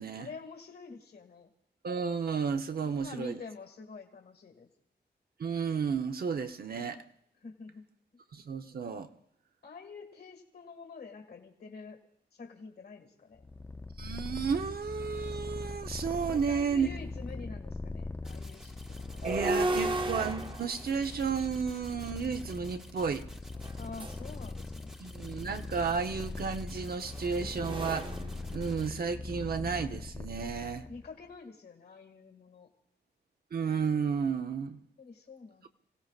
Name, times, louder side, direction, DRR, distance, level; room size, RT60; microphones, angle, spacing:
voice 1, 0.1-1.5 2.8-4.7 7.4-7.8 9.6-12.0 12.3-13.5 16.2-19.3 23.8-25.0 30.9-32.7 35.0-35.7, left 4 dB, 65° left, 1.9 m, -47 dB
voice 2, 1.8-3.4 5.4-7.0 8.3-9.1 14.0-16.9 19.2-23.3 25.0-28.1 28.5-30.9 33.5-34.8, right 6 dB, 60° right, 0.8 m, -32 dB
Purr, 13.4-31.1, left 3 dB, 15° left, 0.5 m, -41 dB
sound 1, 14.7-14.8 15.2-17.2 19.0-22.2 23.6-24.3 25.7-29.2, right 2 dB, 30° right, 0.8 m, -36 dB
sound 2, 18.2-28.9, equal, 5° right, 1.1 m, -54 dB
30.0 x 17.0 x 2.4 m
wide cardioid pair, 150°, 18 cm